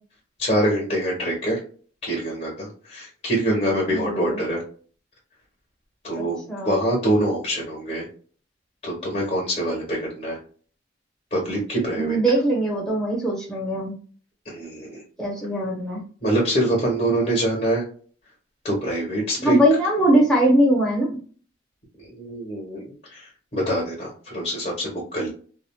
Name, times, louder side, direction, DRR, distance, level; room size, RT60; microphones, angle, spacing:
voice 1, 0.4-1.6 2.0-4.6 6.0-8.1 8.8-10.4 11.3-12.2 14.4-15.0 16.2-17.8 18.6-19.6 22.0-22.8 23.1-25.3, right 1 dB, 40° left, -3 dB, 1.0 m, -25 dB
voice 2, 3.9-4.4 6.1-6.8 12.0-13.9 15.2-16.0 19.4-21.2, right 1 dB, 5° left, -4 dB, 1.0 m, -21 dB
3.2 x 2.4 x 2.2 m, 0.42 s
head